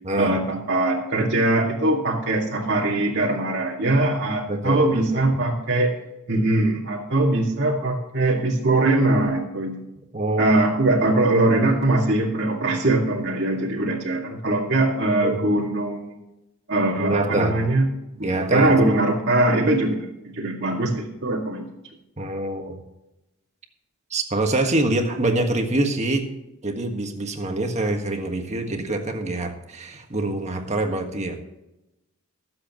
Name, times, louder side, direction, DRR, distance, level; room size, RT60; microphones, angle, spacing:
voice 1, 0.2-5.9 6.3-9.8 10.4-16.1 16.7-17.9 18.2-21.7, right 2 dB, 50° right, -4 dB, 2.0 m, -21 dB
voice 2, 4.5-5.4 10.1-10.6 15.2-15.4 17.0-17.6 18.2-18.8 22.2-22.8 24.1-26.2 26.6-31.4, right 2 dB, 30° right, 4 dB, 1.6 m, -25 dB
22.5 x 7.9 x 3.0 m, 0.95 s
head